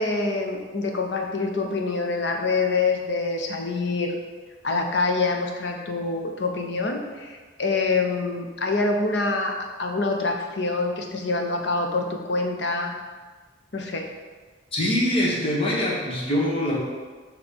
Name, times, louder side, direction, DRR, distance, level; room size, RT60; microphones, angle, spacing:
voice 1, 0.0-4.2 4.6-9.5 9.8-12.9 13.7-14.1, left 3 dB, 60° left, 2 dB, 0.8 m, -25 dB
voice 2, 14.7-16.8, left 1 dB, 30° left, -4 dB, 1.3 m, -23 dB
6.9 x 3.2 x 5.3 m, 1.4 s
head